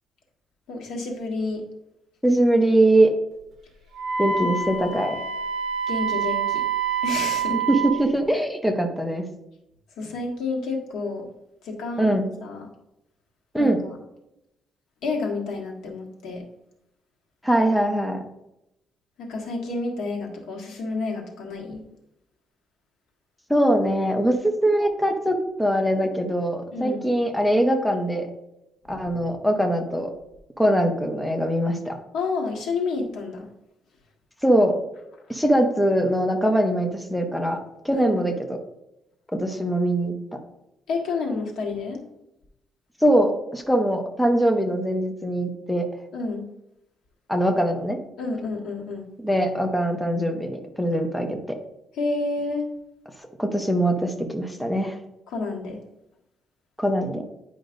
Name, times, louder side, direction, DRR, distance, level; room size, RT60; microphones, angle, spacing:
voice 1, 0.7-1.6 4.4-4.5 5.9-6.6 7.0-7.6 10.0-11.3 11.6-12.1 12.4-12.7 13.6-14.0 15.0-16.4 19.2-21.8 26.7-27.0 28.9-29.2 32.1-33.4 37.9-38.2 40.9-42.0 46.1-46.4 48.2-49.1 52.0-52.7 55.3-55.8, left 3 dB, 90° left, 0 dB, 1.4 m, -29 dB
voice 2, 2.2-3.1 4.2-5.2 7.7-9.2 12.0-12.3 13.5-13.8 17.4-18.2 23.5-28.3 28.9-30.1 30.6-31.9 34.4-34.7 35.3-37.6 37.8-38.6 39.3-40.1 43.0-45.9 47.3-48.0 49.2-51.4 53.4-54.9 56.8-57.2, right 1 dB, 5° left, 3 dB, 0.7 m, -22 dB
Wind instrument woodwind instrument, 3.9-8.0, right 6 dB, 60° right, 0.8 m, -26 dB
9.7 x 5.1 x 2.5 m, 0.86 s
cardioid pair, 160°, 0 cm